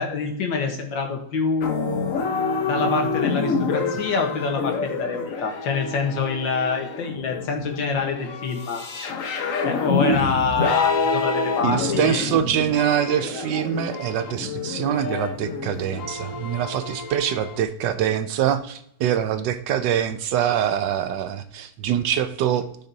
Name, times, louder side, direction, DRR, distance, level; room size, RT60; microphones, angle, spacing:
voice 1, 0.0-2.0 2.7-8.8 9.7-12.2, left 4 dB, 75° left, 3 dB, 1.9 m, -26 dB
sound 1, 1.6-17.6, left 4 dB, 55° left, 1.0 m, -27 dB
voice 2, 11.6-22.7, right 10 dB, 75° right, 10 dB, 1.1 m, -24 dB
14.0 x 5.9 x 2.7 m, 0.70 s
omnidirectional pair, 2.1 m